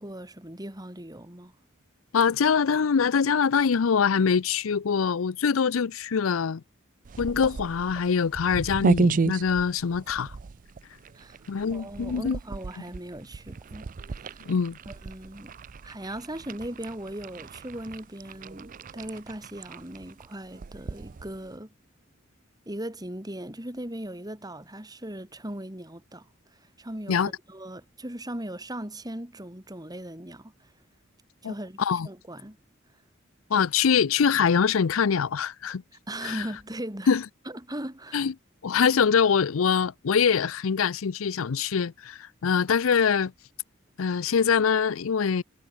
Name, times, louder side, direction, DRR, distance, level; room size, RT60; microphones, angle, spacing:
voice 1, 0.0-1.5 11.1-11.4 11.7-14.5 14.9-15.5 15.8-21.7 22.7-26.3 26.5-30.7 31.4-31.8 32.1-32.6 36.1-37.1 37.5-38.3, right 1 dB, 20° right, 3.5 m, -38 dB
voice 2, 2.1-6.6 7.2-10.4 11.5-12.4 14.5-14.8 27.1-27.3 31.4-31.5 31.8-32.1 33.5-35.8 36.2-36.4 37.1-37.2 38.1-38.3 38.6-43.3 44.0-45.4, left 6 dB, 80° left, 0.5 m, -24 dB
sound 1, 7.0-21.6, right 4 dB, 40° right, 0.4 m, -33 dB
head